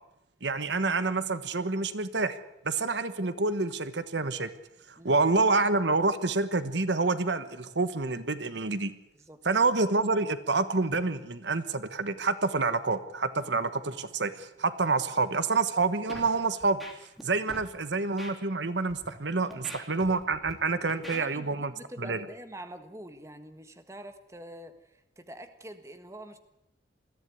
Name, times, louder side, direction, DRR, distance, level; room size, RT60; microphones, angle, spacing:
voice 1, 0.4-2.4 2.6-4.5 4.9-8.9 9.4-16.8 17.2-21.7 22.0-22.2, right 3 dB, 70° right, 12 dB, 1.2 m, -28 dB
Scratching (performance technique), 16.1-16.3 16.6-17.2 17.5-17.7 18.2-18.3 18.9-19.1 19.5-20.5 20.9-21.2, equal, ahead, 3.1 m, -43 dB
voice 2, 21.1-26.4, right 1 dB, 15° right, 8 dB, 1.5 m, -45 dB
21.0 x 14.5 x 9.5 m, 0.85 s
head